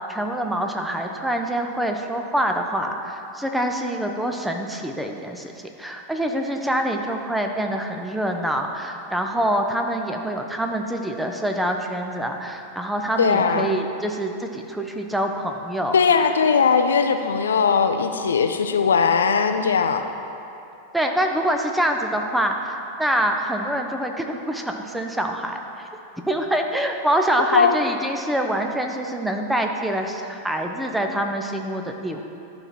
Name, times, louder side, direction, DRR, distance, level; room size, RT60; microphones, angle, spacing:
voice 1, 0.1-5.5 5.8-16.0 20.9-25.9 26.3-32.2, right 1 dB, 5° right, 3 dB, 0.7 m, -25 dB
voice 2, 13.2-13.8 15.9-20.0 27.5-27.8, left 6 dB, 70° left, 7 dB, 0.4 m, -19 dB
11.5 x 4.4 x 4.2 m, 2.7 s
figure-of-eight pair, 90°, 0 cm